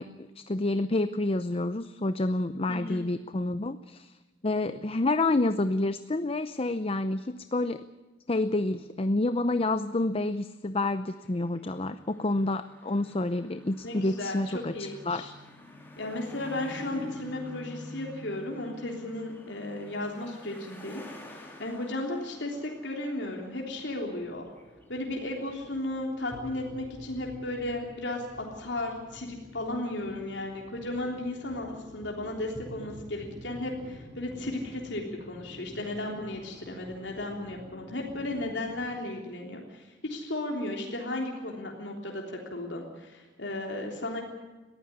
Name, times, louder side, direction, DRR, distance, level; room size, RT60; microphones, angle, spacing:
voice 1, 0.0-4.2 4.4-7.8 8.3-14.7 15.1-15.3, left 2 dB, 30° left, 11 dB, 0.6 m, -28 dB
sound 1, 11.1-24.0 24.5-25.2 25.5-25.6 27.2-27.6 28.1-28.8, left 1 dB, 10° left, 4.0 m, -47 dB
voice 2, 13.8-15.3 16.0-24.4 24.9-44.2, left 1 dB, 70° left, 0 dB, 3.4 m, -35 dB
sound 2, 22.2-39.0, equal, 5° right, 5.8 m, -49 dB
22.0 x 15.0 x 9.8 m, 1.2 s
head